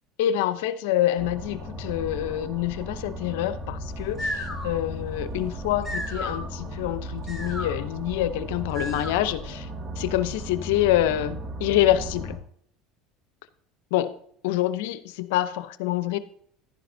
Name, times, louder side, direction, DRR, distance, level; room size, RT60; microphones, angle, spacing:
voice 1, 0.2-9.7 10.0-12.4 13.9-14.1 14.4-16.2, left 13 dB, 80° left, 13 dB, 0.7 m, -26 dB
sound 1, 1.2-12.4, equal, 35° right, 2.1 m, -36 dB
sound 2, 3.9-9.5, left 1 dB, ahead, 4.2 m, -36 dB
11.5 x 10.0 x 2.7 m, 0.66 s
supercardioid pair, 90°, 0 cm